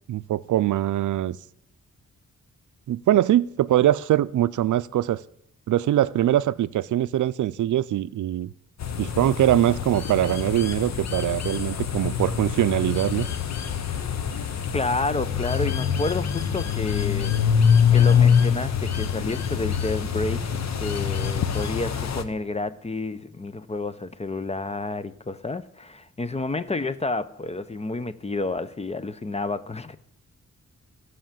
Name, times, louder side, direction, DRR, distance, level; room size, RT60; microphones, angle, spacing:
voice 1, 0.1-1.4 2.9-5.2 5.7-8.5 9.0-13.3, right 12 dB, 80° right, 0.5 m, -22 dB
sound 1, 8.8-22.2, left 7 dB, 65° left, 1.0 m, -24 dB
voice 2, 14.7-17.5 17.9-30.0, left 3 dB, 20° left, 0.6 m, -30 dB
15.5 x 5.8 x 7.5 m
wide cardioid pair, 110°, 30 cm